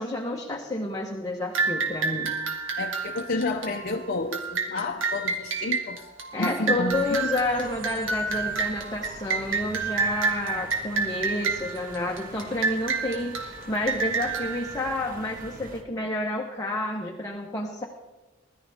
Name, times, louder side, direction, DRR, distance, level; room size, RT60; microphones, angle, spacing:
voice 1, 0.0-2.3 6.3-17.8, left 2 dB, 20° left, -1 dB, 1.2 m, -30 dB
sound 1, 1.5-15.7, right 4 dB, 85° right, 2.5 m, -30 dB
voice 2, 2.8-6.0 6.4-7.3, left 2 dB, 50° left, 2 dB, 0.8 m, -30 dB
sound 2, 6.9-15.8, right 2 dB, 45° right, 1.4 m, -45 dB
21.0 x 13.0 x 3.5 m, 1.2 s
head